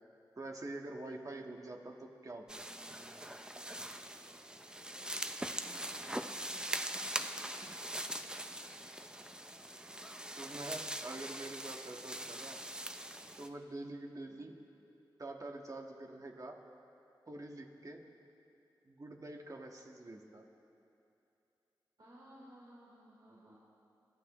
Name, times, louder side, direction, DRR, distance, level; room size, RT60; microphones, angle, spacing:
voice 1, 0.4-2.7 9.7-9.9 10.3-12.6 13.4-14.6 15.2-16.6 17.3-18.0 18.8-20.4, right 2 dB, 45° right, 2 dB, 1.6 m, -46 dB
sound 1, 2.5-13.5, right 1 dB, 10° right, 0.6 m, -42 dB
voice 2, 5.0-5.3 5.6-6.7 14.3-14.5 22.0-23.6, right 1 dB, 65° right, -8 dB, 3.6 m, -58 dB
29.5 x 13.5 x 3.1 m, 2.7 s
wide cardioid pair, 70°, 8 cm